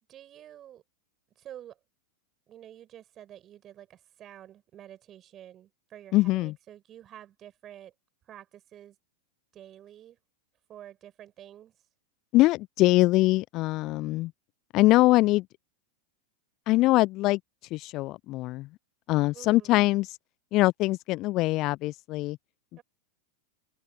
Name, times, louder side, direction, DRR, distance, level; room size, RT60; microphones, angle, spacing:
voice 1, 0.1-0.8 1.4-1.8 2.5-7.9 8.3-9.0 9.5-10.2 10.7-11.7 19.3-19.8 22.8-22.9, right 11 dB, 30° right, 7.9 m, -49 dB
voice 2, 6.1-6.5 12.3-14.3 14.7-15.4 16.7-17.4 17.7-18.7 19.1-20.1 20.5-22.4, left 19 dB, 40° left, 0.8 m, -23 dB
figure-of-eight pair, 90°, 0 cm